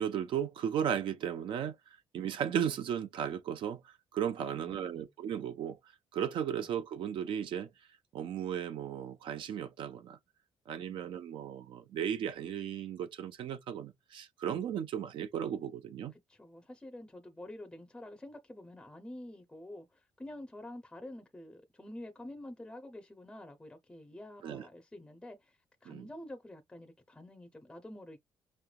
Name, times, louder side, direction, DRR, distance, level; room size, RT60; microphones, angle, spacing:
voice 1, 0.0-1.8 2.1-5.8 6.1-7.7 8.1-10.2 10.7-16.1 24.4-24.6 25.9-26.0, right 9 dB, 65° right, 0.8 m, -35 dB
voice 2, 4.5-5.1 6.5-6.7 10.9-11.0 16.1-28.2, left 1 dB, 10° left, 0.7 m, -48 dB
5.7 x 3.3 x 2.4 m
cardioid pair, 160°, 9 cm